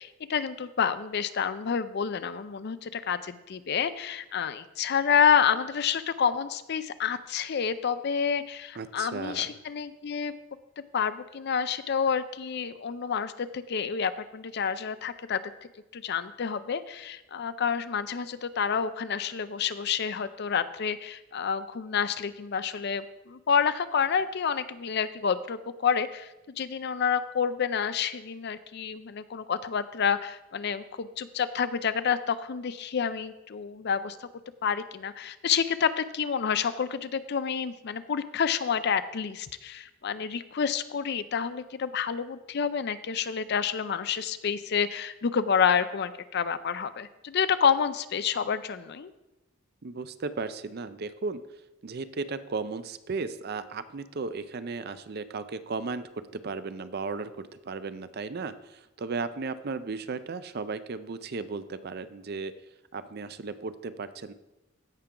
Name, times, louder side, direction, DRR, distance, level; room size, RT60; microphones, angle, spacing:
voice 1, 0.0-10.3 10.9-15.4 15.9-26.3 26.6-34.3 34.6-49.1, left 7 dB, 55° left, 13 dB, 0.5 m, -28 dB
voice 2, 8.8-9.5 49.8-51.4 51.8-62.5 62.9-64.3, right 4 dB, 50° right, 12 dB, 0.5 m, -35 dB
15.5 x 5.8 x 3.8 m, 0.99 s
head